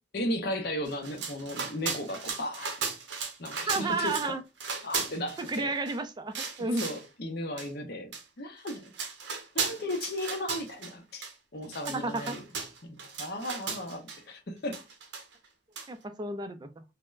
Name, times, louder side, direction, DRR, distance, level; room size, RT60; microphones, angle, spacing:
voice 1, 0.1-2.7 3.4-4.3 4.8-5.7 6.6-8.9 9.5-11.2 11.5-12.4 12.8-14.8, left 1 dB, 55° left, 0.7 m, -35 dB
sound 1, 0.9-4.3 4.6-6.0 6.3-7.1 7.6-7.7 8.1-8.2 8.6-10.9 11.2-11.3 11.6-14.2 14.7-15.5 15.8-15.9, right 5 dB, 70° right, 0.7 m, -36 dB
voice 2, 3.7-4.4 5.4-6.9 11.9-12.4 15.9-16.8, right 3 dB, 20° right, 0.3 m, -32 dB
4.2 x 2.1 x 2.4 m
head